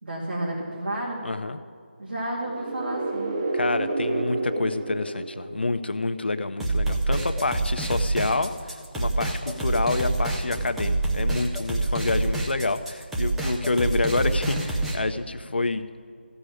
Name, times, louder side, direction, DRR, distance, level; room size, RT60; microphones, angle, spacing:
voice 1, 0.0-1.3 2.0-3.4, right 1 dB, 65° right, -6 dB, 2.7 m, -31 dB
voice 2, 1.2-1.6 3.5-15.8, left 3 dB, 65° left, 10 dB, 0.7 m, -28 dB
sound 1, 2.4-6.2, right 2 dB, 30° right, 0.7 m, -30 dB
sound 2, 6.6-15.0, right 2 dB, 5° right, 0.4 m, -26 dB
15.0 x 5.0 x 8.7 m, 2.2 s
figure-of-eight pair, 165°, 6 cm